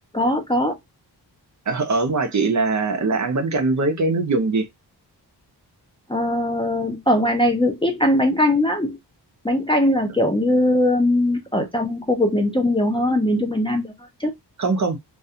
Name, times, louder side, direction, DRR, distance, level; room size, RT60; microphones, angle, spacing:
voice 1, 0.1-0.7 6.1-9.0 9.4-13.9 14.2-14.3, left 1 dB, 15° left, 0.4 m, -20 dB
voice 2, 1.7-4.7 14.6-15.0, right 3 dB, 45° right, 0.6 m, -21 dB
2.4 x 2.3 x 2.6 m
wide cardioid pair, 110°, 41 cm